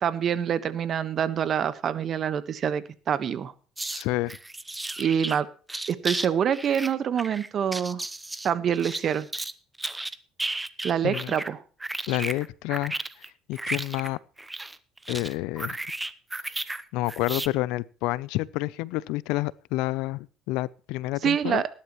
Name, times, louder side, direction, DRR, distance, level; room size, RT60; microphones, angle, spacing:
voice 1, 0.0-3.5 5.0-5.5 5.9-8.0 8.4-9.3 10.8-11.6 21.2-21.7, right 8 dB, 45° right, 1.3 m, -26 dB
sound 1, 3.8-4.0 4.3-5.4 5.7-6.3 6.5-9.5 9.8-11.5 11.8-16.8 17.1-17.5, right 2 dB, 10° right, 0.9 m, -34 dB
voice 2, 3.9-4.4 11.0-11.3 12.1-12.9 13.5-14.2 15.1-15.8 16.9-21.6, left 18 dB, 85° left, 0.6 m, -29 dB
19.0 x 11.5 x 3.1 m
cardioid pair, 120°, 0 cm